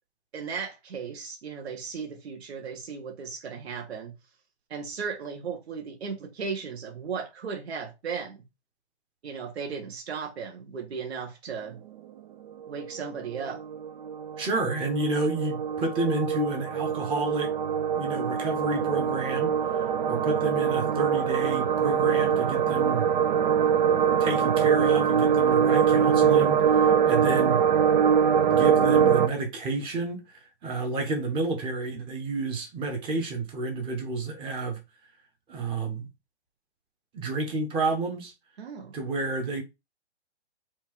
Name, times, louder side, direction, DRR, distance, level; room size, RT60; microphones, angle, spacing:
voice 1, 0.3-4.1 4.7-8.4 9.2-11.8 12.7-13.6 38.6-39.0, right 6 dB, 70° right, 1.3 m, -36 dB
sound 1, 12.6-29.3, right 7 dB, 45° right, 0.4 m, -23 dB
voice 2, 14.4-17.5 17.9-23.1 24.2-27.6 28.5-34.8 35.5-36.1 37.1-38.3 38.9-39.6, right 3 dB, 15° right, 0.9 m, -30 dB
4.5 x 2.4 x 4.4 m
hypercardioid pair, 145°, 34 cm